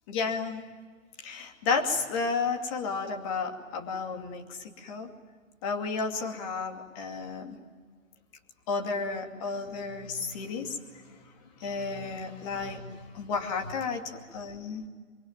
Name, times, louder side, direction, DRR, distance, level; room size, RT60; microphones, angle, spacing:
voice 1, 0.1-0.6 1.2-5.1 5.6-7.6 8.7-10.8 11.1-11.2 11.6-14.9, left 4 dB, 25° left, 4 dB, 2.6 m, -32 dB
25.5 x 24.0 x 9.3 m, 1.6 s
figure-of-eight pair, 145°, 40 cm